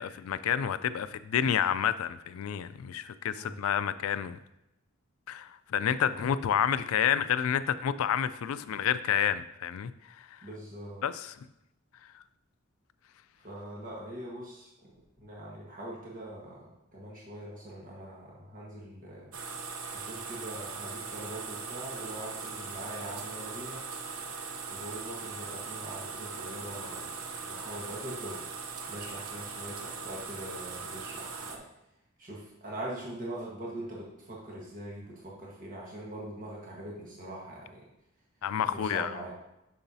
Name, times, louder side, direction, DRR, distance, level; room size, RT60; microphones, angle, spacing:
voice 1, 0.0-4.4 5.3-9.9 10.2-10.3 11.0-11.3 38.4-39.1, left 9 dB, 80° left, 0.3 m, -29 dB
voice 2, 3.3-3.6 6.1-6.4 10.4-11.0 13.4-14.9 15.2-19.3 19.9-23.8 24.7-28.4 28.9-31.6 32.2-37.8 38.7-39.3, right 1 dB, 40° right, 1.4 m, -42 dB
sound 1, 19.3-31.6, right 5 dB, 85° right, 0.7 m, -40 dB
6.9 x 6.3 x 2.7 m
head